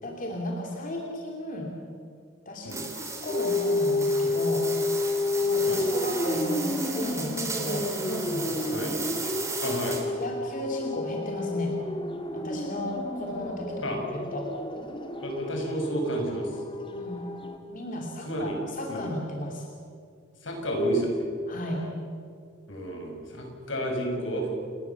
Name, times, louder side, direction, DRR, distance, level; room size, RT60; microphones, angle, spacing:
voice 1, 0.0-1.7 2.5-4.7 5.4-8.9 9.2-9.3 9.6-9.8 10.2-11.8 12.3-14.5 16.9-17.3 17.7-19.7 21.5-21.9, left 1 dB, 45° left, 0 dB, 2.8 m, -34 dB
sound 1, 2.7-10.3, right 4 dB, 15° right, 3.2 m, -36 dB
sound 2, 3.3-17.6, left 2 dB, 25° left, 2.2 m, -30 dB
voice 2, 9.6-10.0 13.8-14.0 15.2-16.5 18.3-18.6 18.9-19.1 20.4-21.3 22.7-24.5, right 1 dB, 80° left, 2 dB, 6.2 m, -30 dB
29.5 x 20.0 x 7.1 m, 2.3 s
head